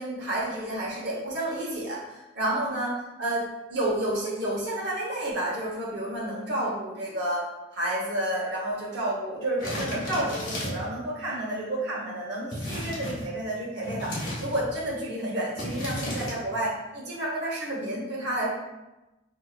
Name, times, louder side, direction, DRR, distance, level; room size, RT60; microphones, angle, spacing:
voice 1, 0.0-3.4 3.7-7.4 7.7-18.5, right 1 dB, 60° right, -4 dB, 1.0 m, -30 dB
sound 1, 9.6-10.9 12.5-13.3 13.8-14.7 15.6-16.3, left 1 dB, 45° left, 1.1 m, -33 dB
4.5 x 2.7 x 2.4 m, 1.0 s
head